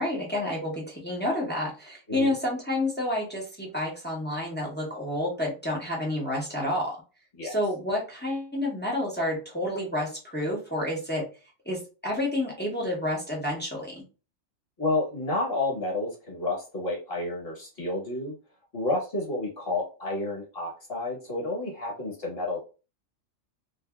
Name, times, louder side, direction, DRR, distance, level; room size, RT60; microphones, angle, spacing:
voice 1, 0.0-7.0 7.4-11.2 11.7-14.1, left 1 dB, 10° left, -3 dB, 0.5 m, -29 dB
voice 2, 14.8-18.3 18.7-22.6, left 2 dB, 45° left, -3 dB, 1.3 m, -30 dB
2.6 x 2.6 x 2.3 m, 0.33 s
omnidirectional pair, 1.4 m